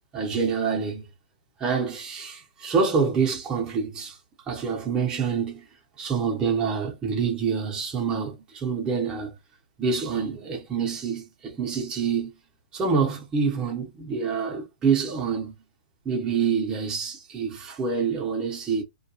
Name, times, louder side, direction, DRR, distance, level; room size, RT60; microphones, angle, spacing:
voice 1, 0.1-1.1 1.6-4.2 4.5-5.7 6.0-9.3 9.8-12.3 12.7-15.5 16.0-18.8, right 5 dB, 15° right, 0.8 m, -26 dB
2.3 x 2.2 x 2.8 m
hypercardioid pair, 150°, 5 cm